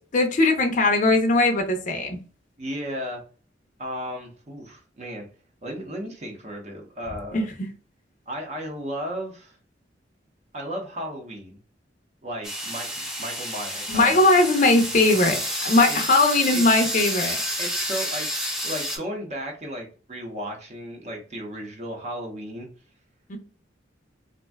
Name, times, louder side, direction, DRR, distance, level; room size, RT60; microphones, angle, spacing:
voice 1, 0.1-2.2 7.3-7.5 13.9-17.4 23.3-23.4, left 2 dB, 45° left, 3 dB, 0.5 m, -20 dB
voice 2, 2.6-3.2 3.8-5.2 5.6-7.4 8.3-9.6 10.5-11.6 12.2-14.2 15.9-16.0 16.5-16.8 17.6-22.7, equal, 40° right, 1 dB, 0.7 m, -34 dB
sound 1, 12.4-19.0, equal, 5° right, 0.6 m, -30 dB
2.5 x 2.2 x 3.3 m, 0.38 s
head